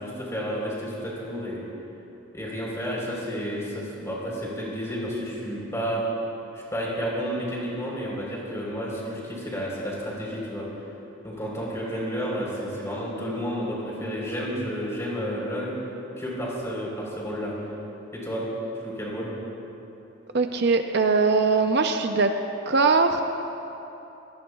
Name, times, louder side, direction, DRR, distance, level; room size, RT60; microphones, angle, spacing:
voice 1, 0.0-1.6 2.3-6.0 6.7-10.7 11.2-15.7 16.2-17.5 18.1-18.5 18.8-19.3, equal, 15° left, -5 dB, 4.0 m, -31 dB
voice 2, 20.3-22.3 22.7-23.2, right 4 dB, 55° right, 6 dB, 0.6 m, -21 dB
25.0 x 18.5 x 2.4 m, 3.0 s
head